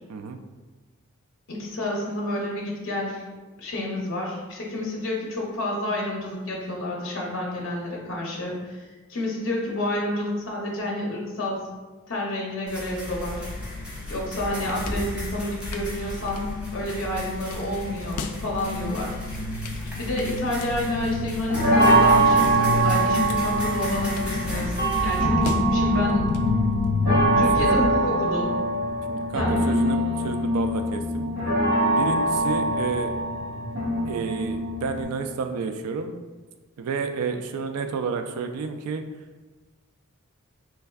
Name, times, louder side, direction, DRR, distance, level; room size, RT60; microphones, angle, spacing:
voice 1, 1.5-3.2 3.6-11.7 12.1-13.4 14.1-16.5 16.7-19.1 20.0-26.3 27.4-28.5 29.3-29.6, left 1 dB, 55° left, -3 dB, 0.6 m, -29 dB
sound 1, 12.7-25.2, equal, 5° right, 0.6 m, -37 dB
sound 2, 13.1-27.9, left 3 dB, 85° left, 0.3 m, -30 dB
sound 3, 20.9-35.0, right 2 dB, 45° right, 1.1 m, -23 dB
voice 2, 29.1-31.3 32.0-33.1 34.1-36.2 36.8-39.1, right 5 dB, 85° right, 7 dB, 0.3 m, -30 dB
3.3 x 3.3 x 2.3 m, 1.3 s
head